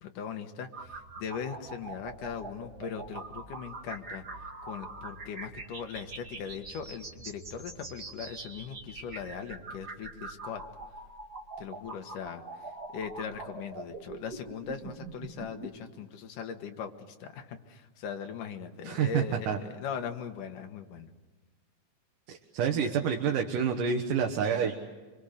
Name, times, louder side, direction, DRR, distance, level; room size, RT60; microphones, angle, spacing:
voice 1, 0.0-4.2 4.6-10.6 11.6-12.4 12.9-21.1, left 7 dB, 85° left, 5 dB, 3.0 m, -39 dB
sound 1, 0.7-15.7, right 3 dB, 35° right, 2.4 m, -43 dB
voice 2, 18.8-19.6 22.3-24.8, right 7 dB, 85° right, 2 dB, 2.9 m, -28 dB
26.0 x 25.0 x 6.7 m, 1.3 s
omnidirectional pair, 3.6 m